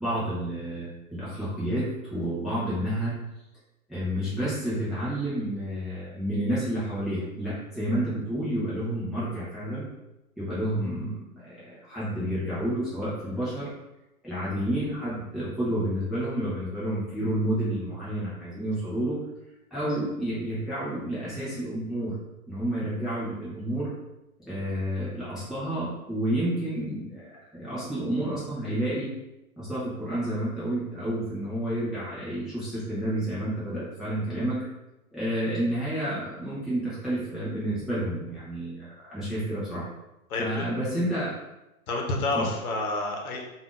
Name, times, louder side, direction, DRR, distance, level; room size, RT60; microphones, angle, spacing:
voice 1, 0.0-3.1 3.9-9.8 10.4-13.7 14.2-19.2 19.7-22.1 22.5-23.9 24.5-27.3 27.5-29.1 29.6-34.6 35.1-39.9 40.4-41.3 42.3-42.5, right 1 dB, ahead, -12 dB, 0.5 m, -30 dB
voice 2, 40.3-40.7 41.9-43.4, left 2 dB, 70° left, 0 dB, 0.9 m, -29 dB
3.5 x 2.5 x 2.4 m, 0.97 s
hypercardioid pair, 125°, 44 cm